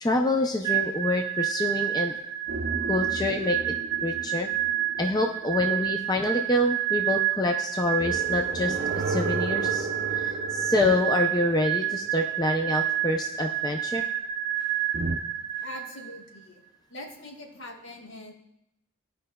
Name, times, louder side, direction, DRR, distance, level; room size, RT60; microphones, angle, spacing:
voice 1, 0.0-2.2 2.9-3.6 4.0-4.5 5.0-8.8 9.1-14.1, left 2 dB, 20° left, 2 dB, 0.4 m, -26 dB
sound 1, 0.6-16.2, right 12 dB, 25° right, 1.1 m, -29 dB
sound 2, 2.5-5.9 8.0-12.6 14.9-15.2, right 3 dB, 50° right, 0.5 m, -34 dB
voice 2, 15.5-16.6 16.9-18.3, left 1 dB, 65° left, 1 dB, 1.3 m, -42 dB
15.5 x 5.3 x 2.2 m, 0.85 s
head